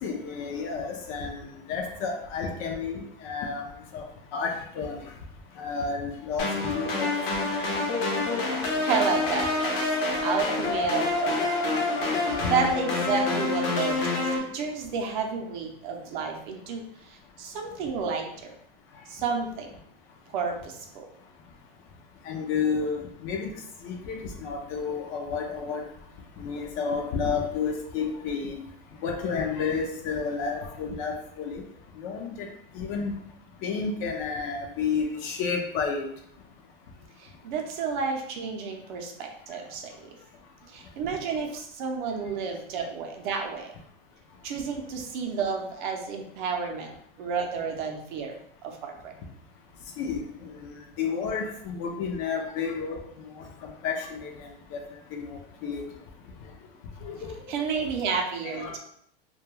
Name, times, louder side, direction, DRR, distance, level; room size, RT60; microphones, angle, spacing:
voice 1, 0.0-3.7 3.9-4.0 4.3-5.1 5.6-7.2 22.2-23.5 23.8-25.8 26.4-28.6 29.0-31.6 32.0-32.5 32.7-33.1 33.6-36.1 50.0-53.0 53.4-53.5 53.8-54.8 55.1-55.8 57.0-57.4 58.4-58.8, left 5 dB, 40° left, 2 dB, 0.4 m, -31 dB
sound 1, 6.4-14.4, left 3 dB, 75° left, 0.8 m, -27 dB
voice 2, 8.8-9.9 10.2-11.6 12.1-14.3 14.5-18.5 19.1-19.7 20.3-21.1 37.2-40.2 40.7-43.7 44.4-48.3 48.6-49.1 57.5-58.8, right 5 dB, 55° right, 2 dB, 0.6 m, -31 dB
2.3 x 2.2 x 3.0 m, 0.69 s
supercardioid pair, 140°, 29 cm